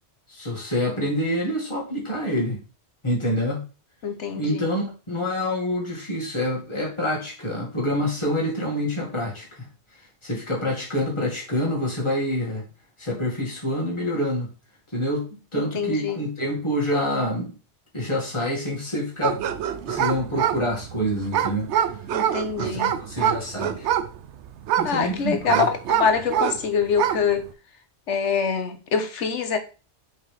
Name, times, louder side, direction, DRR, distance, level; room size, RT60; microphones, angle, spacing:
voice 1, 0.3-2.6 3.0-3.6 4.4-9.7 10.2-12.6 13.0-14.5 14.9-17.6 17.9-19.4 19.9-21.7 22.6-23.9 24.8-25.7, left 1 dB, 25° left, -3 dB, 2.2 m, -27 dB
voice 2, 4.0-4.7 15.5-16.2 22.1-22.9 24.8-27.5 28.1-29.6, left 6 dB, 90° left, 7 dB, 1.3 m, -25 dB
sound 1, 19.2-26.6 26.9-27.3, right 10 dB, 75° right, 0.9 m, -25 dB
5.8 x 4.7 x 3.4 m, 0.33 s
omnidirectional pair, 1.2 m